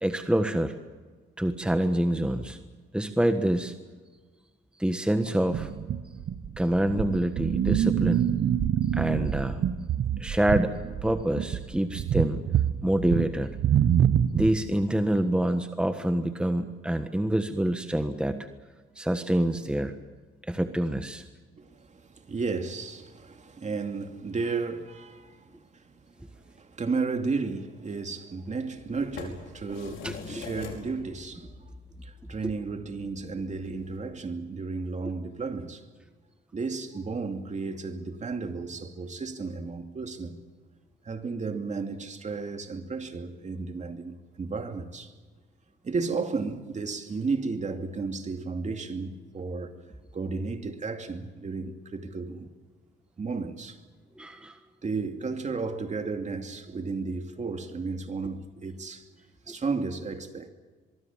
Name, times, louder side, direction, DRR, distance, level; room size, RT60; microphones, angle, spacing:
voice 1, 0.0-0.7 1.4-2.6 2.9-3.7 4.8-5.7 6.6-8.3 8.9-9.6 10.2-12.4 12.8-13.6 14.3-18.5 18.9-19.9 20.5-21.2 30.0-30.5 54.2-54.6 59.5-59.6, right 1 dB, 5° right, 1.4 m, -26 dB
sound 1, 5.5-14.6, right 9 dB, 65° right, 1.2 m, -26 dB
voice 2, 21.6-31.7 32.0-35.9 36.5-40.4 41.0-45.1 45.8-49.7 50.1-52.5 53.2-53.8 54.8-59.1 59.5-60.5, right 4 dB, 35° right, 2.5 m, -33 dB
sound 2, 28.8-34.0, left 6 dB, 80° left, 5.2 m, -45 dB
24.0 x 23.5 x 7.4 m
cardioid pair, 90°, 20 cm